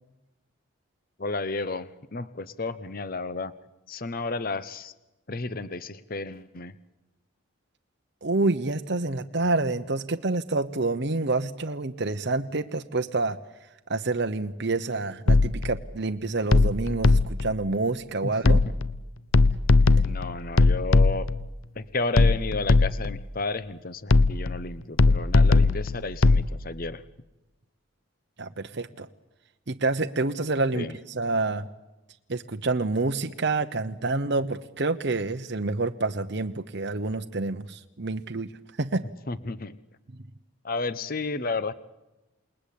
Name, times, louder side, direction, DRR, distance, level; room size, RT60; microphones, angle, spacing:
voice 1, 1.2-3.5 3.9-4.9 5.3-6.7 18.2-18.5 20.0-21.3 21.8-27.0 30.7-30.9 39.3-39.8 40.6-41.7, left 3 dB, 40° left, 15 dB, 0.8 m, -32 dB
voice 2, 8.2-13.4 13.9-18.6 20.0-20.1 28.4-29.1 29.7-31.7 32.3-38.5 38.8-39.0, right 3 dB, 55° right, 7 dB, 0.9 m, -28 dB
sound 1, 15.3-15.8 16.5-17.6 18.4-19.0 19.3-21.5 22.2-23.2 24.1-24.6 25.0-26.5, left 3 dB, 70° left, 0.8 m, -19 dB
28.5 x 20.5 x 8.5 m, 1.0 s
head